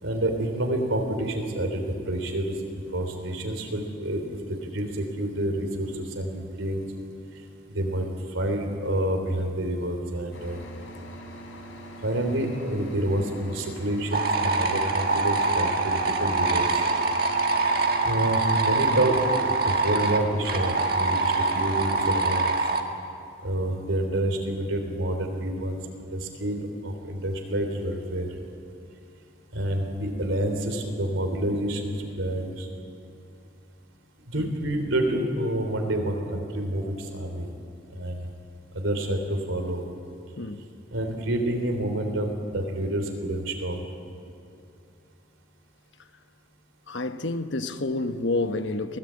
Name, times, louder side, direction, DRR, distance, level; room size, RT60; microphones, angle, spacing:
voice 1, 0.0-2.5 2.9-6.8 7.7-8.0 8.3-10.6 12.0-16.7 18.0-19.2 19.6-22.5 23.4-25.8 26.1-28.3 29.5-32.7 34.3-37.5 38.0-38.3 38.7-39.8 40.9-43.8, right 1 dB, 90° right, 3.7 m, -28 dB
sound 1, 10.3-22.4, equal, 90° left, 3.8 m, -43 dB
sound 2, 14.1-22.8, right 3 dB, 50° right, 1.7 m, -24 dB
voice 2, 46.9-49.0, left 2 dB, 70° left, 1.1 m, -29 dB
23.0 x 18.0 x 8.8 m
head